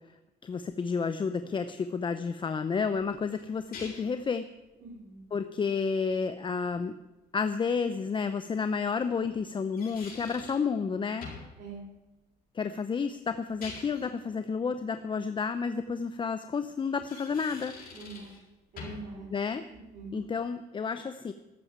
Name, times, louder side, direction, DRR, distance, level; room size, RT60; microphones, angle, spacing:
voice 1, 0.4-4.5 5.3-7.0 7.3-11.3 12.5-17.7 19.3-19.6 20.1-21.3, left 5 dB, 30° left, 10 dB, 0.7 m, -31 dB
sound 1, 2.9-4.2 7.5-7.6 9.5-10.7 11.2-11.6 13.4-14.1 16.9-18.4 18.8-19.1, left 4 dB, 60° left, 6.3 m, -45 dB
voice 2, 4.8-5.2 11.6-11.8 17.9-18.4 18.7-19.3 19.7-20.1, right 3 dB, 55° right, -4 dB, 4.5 m, -43 dB
13.0 x 9.0 x 9.3 m, 1.0 s
cardioid pair, 110°, 17 cm